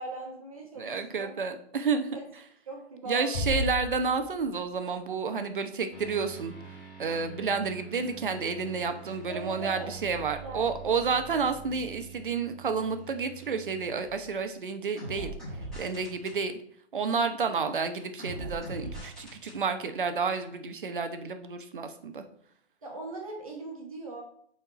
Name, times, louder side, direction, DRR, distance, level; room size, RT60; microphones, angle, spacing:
voice 1, 0.0-1.4 2.1-2.3 2.7-3.6 9.3-9.9 10.4-10.7 22.8-24.2, right 2 dB, 30° right, 0 dB, 1.1 m, -40 dB
voice 2, 0.8-2.2 3.0-6.5 7.0-15.3 15.8-16.5 16.9-22.2, right 5 dB, 50° right, 8 dB, 0.8 m, -30 dB
Bass drum, 3.3-4.8, left 3 dB, 35° left, 2.0 m, -33 dB
sound 1, 5.9-14.4 15.0-16.4 18.2-19.6, right 3 dB, ahead, 1.2 m, -44 dB
7.1 x 4.4 x 4.8 m, 0.65 s
hypercardioid pair, 175°, 34 cm